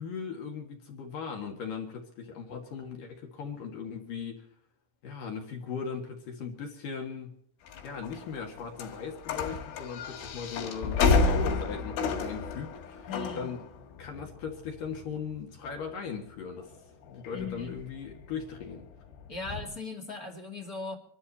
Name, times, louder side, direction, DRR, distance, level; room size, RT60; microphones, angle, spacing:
voice 1, 0.0-4.5 5.0-7.3 7.8-13.6 14.0-16.8 17.1-18.9, left 6 dB, 55° left, 2 dB, 3.0 m, -38 dB
sound 1, 7.7-19.7, left 4 dB, 85° left, 4.8 m, -32 dB
voice 2, 13.1-13.5 17.3-17.8 19.3-21.0, left 4 dB, 30° left, 0 dB, 1.6 m, -38 dB
25.0 x 13.0 x 4.2 m, 0.65 s
omnidirectional pair, 5.5 m